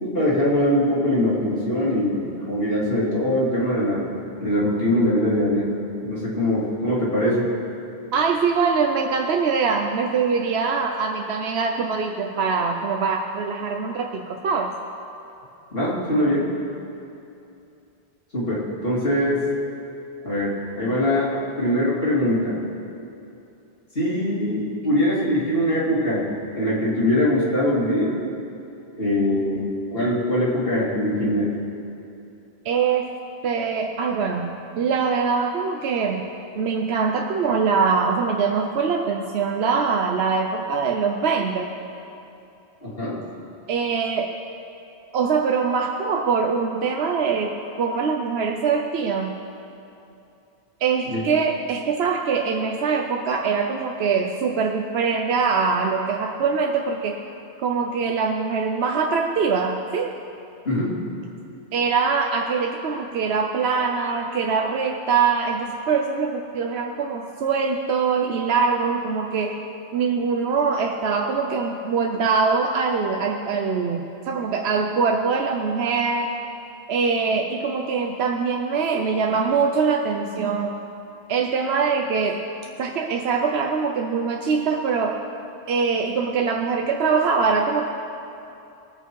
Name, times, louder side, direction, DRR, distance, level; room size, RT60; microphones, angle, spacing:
voice 1, 0.0-4.0 4.4-5.7 6.0-7.5 15.7-16.5 18.3-19.4 20.2-21.3 21.6-22.6 23.9-26.3 26.5-28.1 29.0-31.5 42.8-43.2 51.1-51.2 60.6-61.0, left 1 dB, 65° left, -7 dB, 3.1 m, -22 dB
voice 2, 8.1-14.7 32.6-33.1 33.4-36.2 36.6-41.7 43.7-44.3 45.1-49.4 50.8-57.2 57.6-60.2 61.7-69.6 69.9-76.3 76.9-80.7 81.3-82.4 82.8-85.2 85.7-87.9, right 5 dB, 75° right, 3 dB, 0.9 m, -23 dB
19.0 x 7.9 x 4.6 m, 2.8 s
omnidirectional pair, 1.1 m